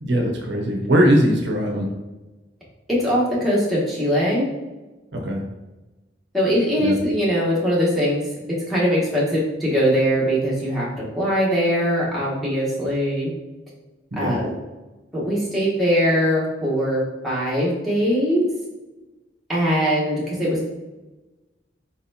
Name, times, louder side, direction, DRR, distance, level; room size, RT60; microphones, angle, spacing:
voice 1, 0.0-1.9 5.1-5.4 6.8-7.0 14.1-14.3, equal, 65° right, 1 dB, 0.7 m, -20 dB
voice 2, 2.9-4.5 6.3-8.3 8.7-10.9 11.1-13.3 14.2-14.5 15.1-18.4 19.5-20.7, equal, ahead, -8 dB, 1.2 m, -21 dB
4.3 x 4.2 x 2.7 m, 1.1 s
head